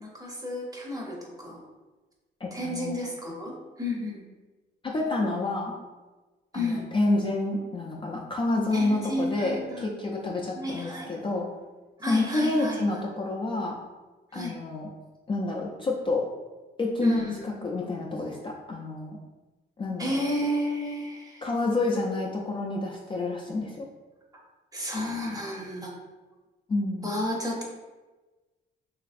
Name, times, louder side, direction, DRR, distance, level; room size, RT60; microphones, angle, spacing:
voice 1, 0.0-1.7 2.5-4.2 6.5-6.9 8.7-9.9 10.5-11.3 12.0-13.0 14.3-14.6 17.0-17.5 20.0-21.5 24.7-25.9 27.0-27.6, left 1 dB, 20° right, -2 dB, 0.7 m, -32 dB
voice 2, 2.4-3.0 4.8-5.8 6.5-11.5 12.1-13.8 14.3-14.9 15.3-16.3 16.8-19.2 19.8-20.2 21.4-23.9 26.7-27.1, left 2 dB, 25° left, -2 dB, 0.4 m, -28 dB
3.0 x 2.5 x 2.5 m, 1.2 s
cardioid pair, 90°, 20 cm